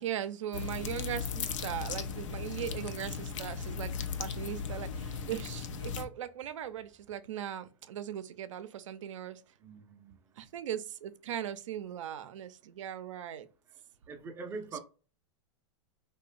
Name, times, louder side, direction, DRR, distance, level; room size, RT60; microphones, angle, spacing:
voice 1, 0.0-9.4 10.4-13.5 14.7-14.8, right 10 dB, 85° right, 0.5 m, -39 dB
sound 1, 0.5-6.0, left 6 dB, 80° left, 0.5 m, -37 dB
voice 2, 9.6-10.2 14.1-14.8, right 4 dB, 15° right, 0.4 m, -42 dB
2.9 x 2.1 x 2.4 m
supercardioid pair, 145°, 16 cm